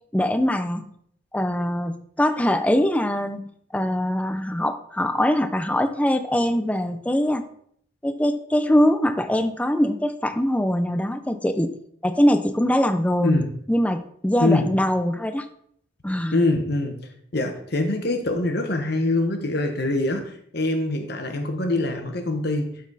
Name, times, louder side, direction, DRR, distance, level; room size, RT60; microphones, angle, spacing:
voice 1, 0.1-0.9 1.3-3.4 3.7-7.4 8.0-11.7 12.0-13.4 13.7-15.5 16.0-16.4, equal, 5° left, 8 dB, 0.5 m, -22 dB
voice 2, 14.4-14.8 16.3-17.0 17.3-22.7, left 2 dB, 55° left, 5 dB, 1.1 m, -24 dB
12.0 x 4.1 x 4.1 m, 0.66 s
head